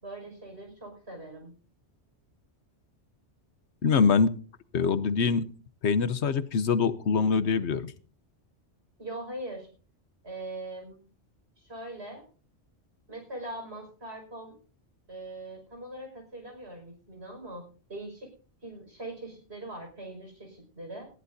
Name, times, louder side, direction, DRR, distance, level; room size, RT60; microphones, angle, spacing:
voice 1, 0.0-1.5 9.0-9.7 10.2-11.0 11.6-12.2 13.1-14.6 15.1-17.6 17.9-18.3 18.6-21.1, right 1 dB, 65° right, 2 dB, 5.8 m, -41 dB
voice 2, 3.8-4.4 4.7-5.5 5.8-7.9, left 5 dB, 70° left, 13 dB, 1.1 m, -24 dB
19.5 x 14.0 x 2.7 m, 0.38 s
omnidirectional pair, 1.2 m